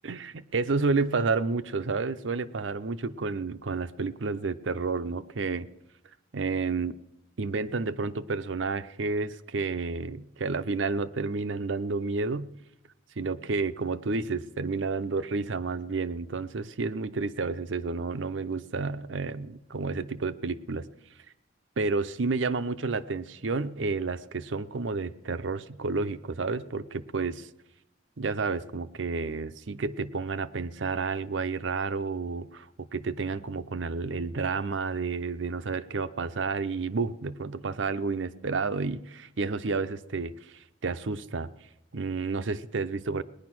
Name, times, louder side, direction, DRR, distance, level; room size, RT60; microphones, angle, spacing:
voice 1, 0.0-5.7 6.3-7.0 7.4-12.5 13.2-20.9 21.8-27.5 28.2-41.5 41.9-43.2, right 4 dB, 85° right, 12 dB, 0.7 m, -30 dB
19.0 x 10.5 x 6.1 m, 0.94 s
head